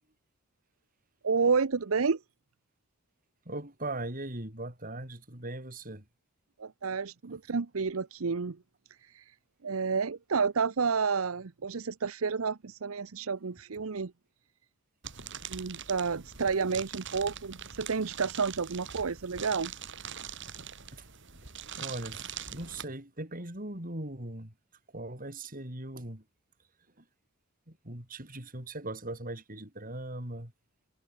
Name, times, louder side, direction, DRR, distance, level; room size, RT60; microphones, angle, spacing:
voice 1, 1.2-2.2 6.6-8.6 9.0-9.3 9.6-14.1 15.5-19.7, right 5 dB, 80° right, 0.8 m, -30 dB
voice 2, 3.5-6.0 20.9-21.1 21.8-24.5 24.9-26.2 27.0-27.1 27.7-30.5, right 1 dB, 40° right, 6.0 m, -39 dB
sound 1, 15.0-22.8, right 8 dB, 60° right, 6.9 m, -43 dB
head